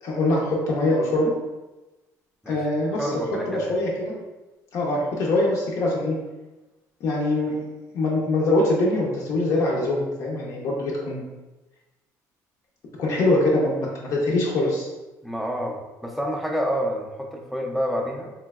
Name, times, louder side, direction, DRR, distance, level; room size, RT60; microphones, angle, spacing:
voice 1, 0.0-1.3 2.5-3.1 3.5-4.1 4.7-6.2 7.0-7.7 7.9-11.2 13.0-14.9, left 2 dB, 55° left, -3 dB, 0.5 m, -23 dB
voice 2, 3.0-3.8 15.2-18.3, equal, ahead, 0 dB, 0.4 m, -28 dB
3.1 x 2.6 x 2.3 m, 1.1 s
cardioid pair, 145°, 7 cm